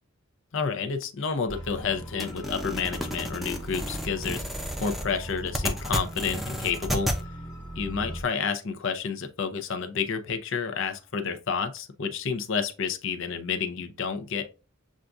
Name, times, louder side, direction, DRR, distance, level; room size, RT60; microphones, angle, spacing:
voice 1, 0.5-4.4 4.8-7.1 7.8-14.5, left 6 dB, 65° left, 0.6 m, -30 dB
sound 1, 1.5-8.2, right 1 dB, 25° left, 1.1 m, -40 dB
sound 2, 2.2-7.2, equal, ahead, 0.5 m, -32 dB
7.2 x 2.6 x 2.3 m
head